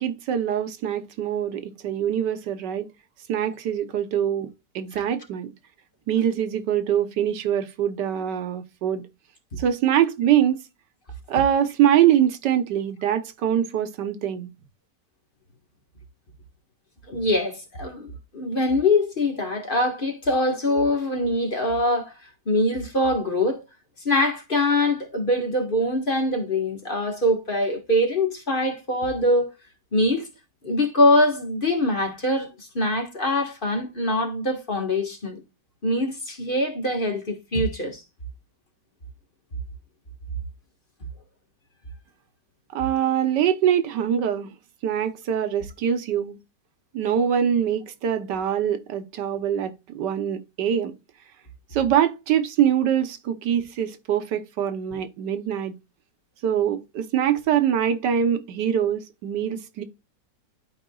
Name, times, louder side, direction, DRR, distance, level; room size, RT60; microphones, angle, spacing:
voice 1, 0.0-2.9 3.3-4.5 4.7-5.5 6.1-9.0 9.6-10.6 11.3-14.5 42.7-44.5 44.8-46.4 46.9-50.9 51.7-55.7 56.4-59.8, right 9 dB, 85° right, 1.5 m, -23 dB
voice 2, 17.1-22.1 22.4-23.6 24.0-29.5 29.9-30.3 30.6-35.4 35.8-38.0, left 1 dB, 30° left, 1.6 m, -23 dB
12.0 x 4.9 x 2.3 m
omnidirectional pair, 1.8 m